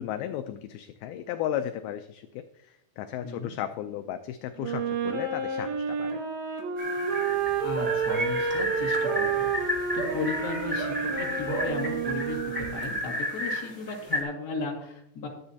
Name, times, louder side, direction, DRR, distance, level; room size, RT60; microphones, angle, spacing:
voice 1, 0.0-6.2, left 11 dB, 85° left, 7 dB, 2.2 m, -35 dB
voice 2, 3.2-3.5 7.6-15.3, left 4 dB, 35° left, -1 dB, 1.9 m, -35 dB
Wind instrument woodwind instrument, 4.6-12.9, right 5 dB, 90° right, 4.1 m, -30 dB
sound 1, 6.8-14.2, equal, 5° right, 2.5 m, -32 dB
sound 2, 7.3-13.0, right 5 dB, 60° right, 4.9 m, -39 dB
22.5 x 7.7 x 2.8 m, 0.77 s
omnidirectional pair, 4.9 m